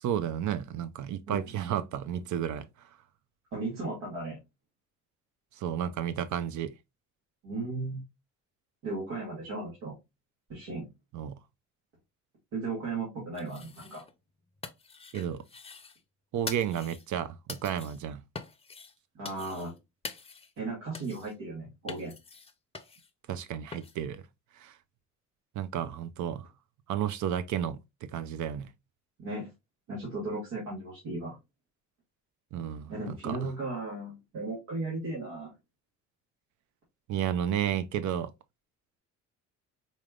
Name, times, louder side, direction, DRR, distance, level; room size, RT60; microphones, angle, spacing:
voice 1, 0.0-2.7 5.6-6.7 11.1-11.4 15.1-15.4 16.3-18.2 23.3-24.2 24.6-24.7 25.6-26.5 26.9-27.8 28.1-28.7 32.5-33.4 37.1-38.3, right 9 dB, 75° right, 0.6 m, -32 dB
voice 2, 3.5-4.4 7.4-8.0 8.8-10.0 10.5-10.9 12.5-14.0 19.1-19.7 20.6-22.1 29.2-29.5 29.9-31.4 32.9-35.5, right 3 dB, 90° right, 1.9 m, -36 dB
sound 1, 13.3-14.2 14.4-16.0 16.5-17.1 17.5-18.0 18.4-18.9 19.2-19.8 20.0-20.6 20.9-21.3 21.9-23.1 23.7-24.0, left 5 dB, 20° left, 0.5 m, -44 dB
4.1 x 3.2 x 2.4 m
cardioid pair, 90°, 30 cm